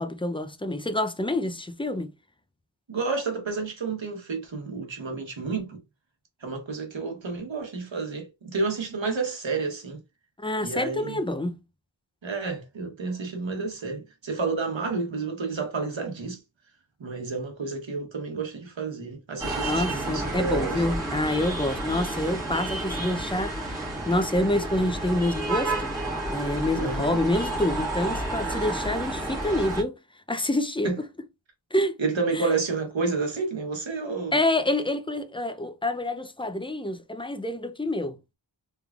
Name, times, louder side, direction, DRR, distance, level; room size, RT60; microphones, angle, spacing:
voice 1, 0.0-2.1 10.4-11.6 19.6-25.9 26.3-30.0 30.3-31.0 31.7-32.0 32.3-32.5 34.3-38.2, left 1 dB, 10° left, 0.4 m, -27 dB
voice 2, 2.9-5.8 6.4-10.0 10.6-11.2 12.2-16.4 17.0-20.8 26.7-27.2 30.8-31.0 32.0-34.4, right 4 dB, 75° right, 1.2 m, -30 dB
sound 1, 19.4-29.8, right 2 dB, 5° right, 1.6 m, -31 dB
3.5 x 3.2 x 2.4 m
wide cardioid pair, 60°, 46 cm